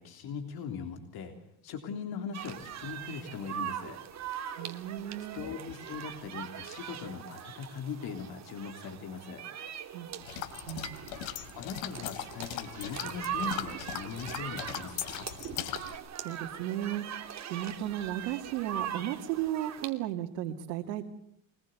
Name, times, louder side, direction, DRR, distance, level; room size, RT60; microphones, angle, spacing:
voice 1, 0.0-1.3 1.6-4.0 5.3-9.4 11.6-15.3, left 6 dB, 50° left, 5 dB, 3.5 m, -40 dB
sound 1, 2.3-19.9, right 9 dB, 35° right, 2.7 m, -41 dB
voice 2, 4.5-5.4 9.9-11.0 16.2-21.0, right 12 dB, 85° right, 2 dB, 2.3 m, -35 dB
sound 2, 10.2-16.0, left 12 dB, 75° left, 3.1 m, -39 dB
24.5 x 21.0 x 8.1 m, 0.73 s
cardioid pair, 135°, 49 cm